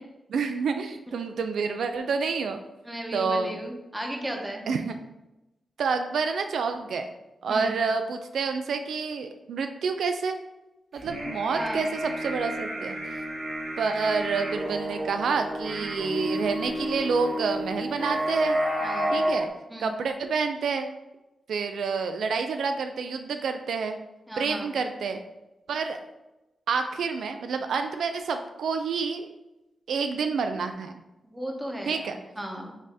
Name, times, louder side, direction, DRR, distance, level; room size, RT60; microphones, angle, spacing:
voice 1, 0.3-2.6 3.1-3.6 4.7-4.9 5.8-7.1 7.4-10.4 10.9-13.2 13.8-18.6 19.1-19.5 19.8-20.9 21.5-24.0 24.4-25.2 25.7-26.0 26.7-29.3 29.9-31.0 31.9-32.2, right 5 dB, 90° right, 6 dB, 0.3 m, -28 dB
voice 2, 2.8-4.7 7.5-7.8 11.5-11.9 18.8-19.2 19.7-20.0 24.3-24.7 31.2-32.1 32.4-32.8, right 1 dB, 5° right, 0 dB, 0.9 m, -35 dB
sound 1, 11.0-19.4, equal, 45° right, 1.3 m, -30 dB
5.2 x 2.7 x 3.6 m, 0.97 s
cardioid pair, 90°, 0 cm